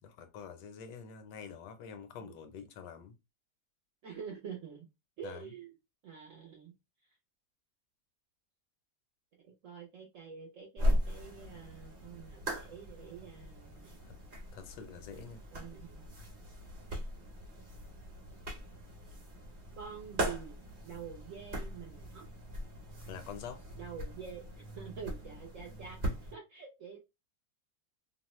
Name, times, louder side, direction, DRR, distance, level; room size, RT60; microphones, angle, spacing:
voice 1, 0.0-3.1 5.2-5.5 14.0-14.2 14.5-15.4 23.1-23.6, left 7 dB, 80° left, 1.2 m, -46 dB
voice 2, 4.0-4.9 5.2-5.7 6.0-6.7 9.4-14.0 15.5-16.1 19.8-20.6 20.8-22.3 23.8-27.0, right 7 dB, 70° right, 0.7 m, -47 dB
sound 1, 10.8-26.3, equal, 35° right, 1.0 m, -39 dB
2.9 x 2.0 x 2.9 m
omnidirectional pair, 1.9 m